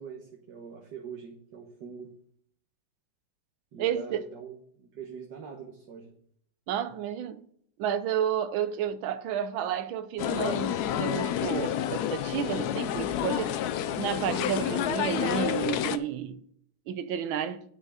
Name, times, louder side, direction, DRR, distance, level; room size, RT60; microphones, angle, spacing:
voice 1, 0.0-2.1 3.7-6.1, right 6 dB, 60° right, 1.8 m, -43 dB
voice 2, 3.8-4.2 6.7-7.4 7.8-13.5 14.0-16.4 16.9-17.6, right 9 dB, 90° right, 1.6 m, -31 dB
sound 1, 10.2-16.0, left 10 dB, 70° left, 0.9 m, -29 dB
9.2 x 6.1 x 4.9 m
omnidirectional pair, 2.1 m